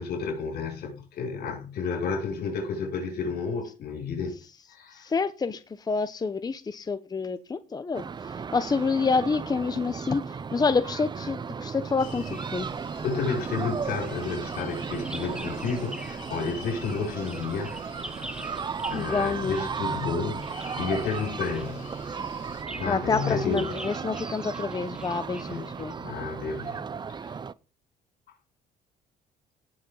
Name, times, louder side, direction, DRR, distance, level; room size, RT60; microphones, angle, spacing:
voice 1, 0.0-4.4 4.7-5.1 13.0-17.7 18.4-18.5 18.9-21.9 22.7-23.7 25.5-25.7 26.0-27.4, left 5 dB, 70° left, 6.5 m, -31 dB
voice 2, 4.9-12.7 18.9-19.7 22.8-25.9, left 4 dB, 25° left, 0.8 m, -28 dB
sound 1, 7.9-27.5, right 6 dB, 25° right, 0.6 m, -35 dB
sound 2, 12.0-22.6, left 4 dB, 50° left, 6.3 m, -47 dB
Bird vocalization bird call bird song, 14.0-16.3 16.6-26.1, right 1 dB, 5° right, 1.5 m, -45 dB
18.0 x 7.4 x 3.9 m
cardioid pair, 110°, 17 cm